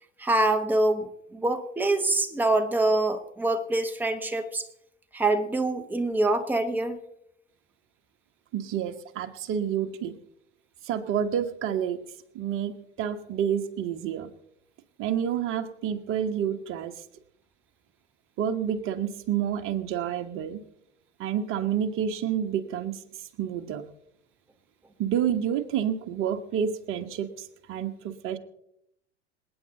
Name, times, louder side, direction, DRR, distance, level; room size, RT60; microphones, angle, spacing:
voice 1, 0.2-4.7 5.1-7.0, right 2 dB, 5° right, 6 dB, 1.1 m, -25 dB
voice 2, 8.5-10.2 10.8-12.0 12.3-14.3 15.0-16.9 18.4-20.6 21.2-23.0 23.4-23.8 25.0-28.4, right 9 dB, 35° right, 7 dB, 1.4 m, -29 dB
27.0 x 9.1 x 4.0 m, 0.77 s
figure-of-eight pair, 85°, 36 cm